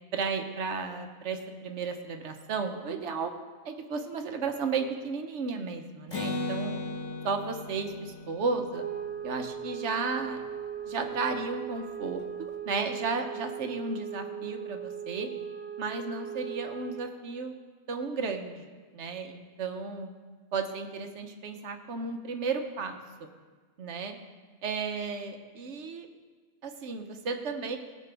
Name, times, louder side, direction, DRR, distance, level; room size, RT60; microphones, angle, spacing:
voice 1, 0.1-3.3 3.6-6.7 7.2-8.8 9.2-10.4 10.8-15.3 15.8-17.5 17.9-20.1 20.5-23.3 23.8-24.1 24.6-26.1 26.6-27.8, right 4 dB, 70° right, 6 dB, 1.2 m, -34 dB
Acoustic guitar, 6.1-9.8, left 3 dB, 90° left, 1.7 m, -37 dB
sound 1, 8.7-17.1, right 8 dB, 30° right, 1.5 m, -38 dB
16.5 x 7.5 x 3.4 m, 1.4 s
omnidirectional pair, 1.2 m